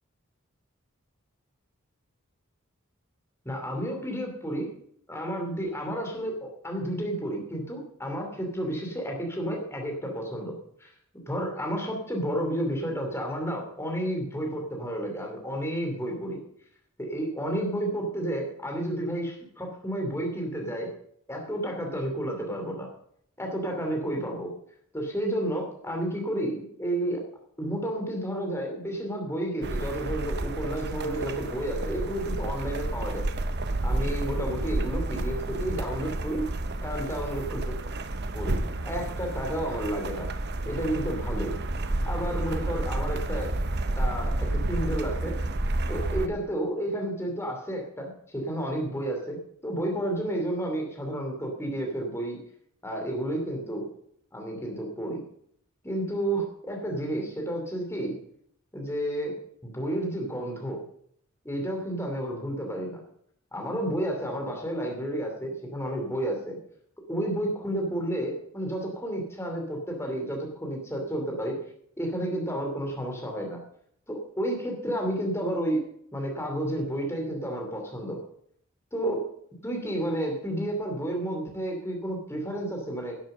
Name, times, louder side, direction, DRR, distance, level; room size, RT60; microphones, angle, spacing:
voice 1, 3.4-4.7 5.1-10.5 10.8-10.9 11.3-16.4 17.0-20.9 21.3-22.9 23.4-24.5 24.9-27.2 27.6-33.3 33.8-36.5 36.8-37.8 38.3-38.6 38.8-40.3 40.6-41.6 42.1-43.5 44.0-45.4 45.9-52.4 52.8-53.9 54.3-55.2 55.8-58.1 58.7-59.3 59.6-60.8 61.4-63.0 63.5-66.6 67.1-71.6 72.0-73.6 74.1-75.8 76.1-78.2 78.9-79.2 79.6-83.1, right 1 dB, 10° left, 1 dB, 2.7 m, -31 dB
sound 1, 29.6-46.3, right 2 dB, 55° right, 0.9 m, -30 dB
11.5 x 7.8 x 6.6 m, 0.67 s
head